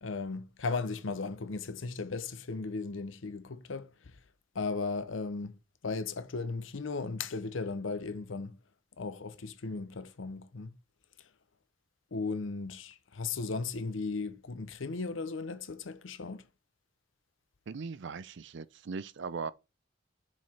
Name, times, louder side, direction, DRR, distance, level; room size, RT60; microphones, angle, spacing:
voice 1, 0.0-4.2 4.5-5.5 5.8-8.6 9.0-10.7 12.1-16.5, left 4 dB, 75° left, 0.7 m, -36 dB
voice 2, 17.7-19.5, right 5 dB, 65° right, 0.5 m, -39 dB
5.8 x 4.7 x 4.3 m
head